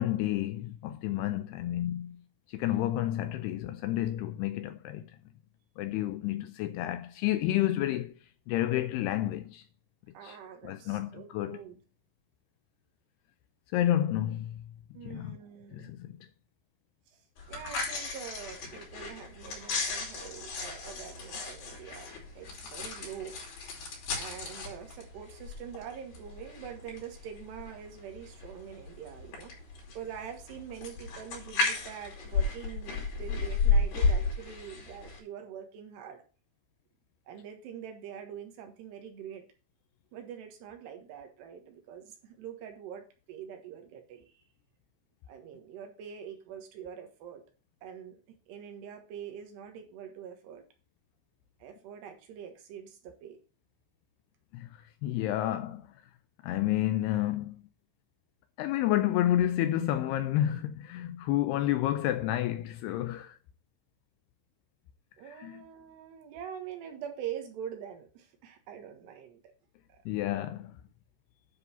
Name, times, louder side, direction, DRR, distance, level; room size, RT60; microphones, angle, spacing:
voice 1, 0.0-2.2 2.5-5.1 5.8-8.1 8.5-9.6 10.2-10.4 10.6-11.6 13.7-14.7 15.0-15.4 15.7-16.3 54.5-55.9 56.4-57.6 58.6-63.4 65.3-65.6 70.1-70.8, left 13 dB, 80° left, 2.4 m, -30 dB
voice 2, 10.1-11.8 14.9-15.9 17.5-22.1 22.4-23.4 24.1-29.5 30.0-36.2 37.3-39.5 40.1-44.4 45.3-47.4 47.8-48.2 48.5-50.6 51.6-53.4 65.2-69.5 69.9-70.0, right 9 dB, 75° right, 3.4 m, -44 dB
sound 1, 17.4-35.2, left 3 dB, 65° left, 4.9 m, -34 dB
10.0 x 4.0 x 6.8 m
omnidirectional pair, 5.1 m